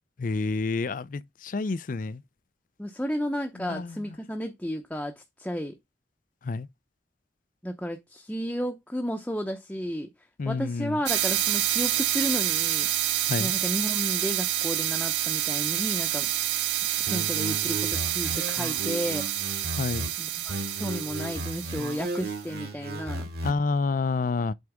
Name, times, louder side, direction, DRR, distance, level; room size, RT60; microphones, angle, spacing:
voice 1, 0.2-2.2 3.6-3.9 6.4-6.7 10.4-11.0 13.3-13.5 19.8-20.1 23.4-24.5, left 4 dB, 50° left, 0.4 m, -28 dB
voice 2, 2.8-5.8 7.6-10.1 10.4-12.9 13.4-16.3 17.0-19.3 20.2-23.3, equal, 5° left, 0.7 m, -33 dB
sound 1, 11.1-22.3, right 13 dB, 80° right, 0.8 m, -28 dB
sound 2, 17.1-20.1 20.5-23.5, right 1 dB, 60° right, 2.6 m, -35 dB
7.9 x 4.6 x 3.5 m
head